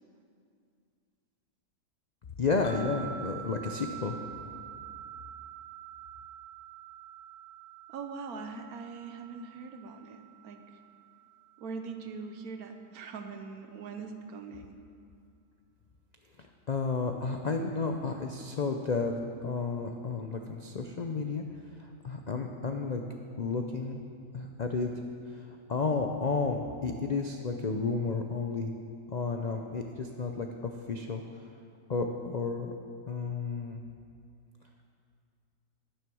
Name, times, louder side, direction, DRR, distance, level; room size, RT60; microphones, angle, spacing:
voice 1, 2.4-4.1 16.7-19.1 19.4-21.4 21.8-23.0 23.4-24.0 24.3-24.9 25.3-25.4 25.7-28.7 29.1-31.2 31.9-32.7 33.1-33.8, left 4 dB, 90° left, 3 dB, 0.3 m, -32 dB
sound 1, 2.6-11.9, right 9 dB, 60° left, 1.2 m, -46 dB
voice 2, 7.9-10.6 11.6-14.8, right 4 dB, 70° right, 6 dB, 1.3 m, -42 dB
10.5 x 9.8 x 6.2 m, 2.4 s
omnidirectional pair, 1.7 m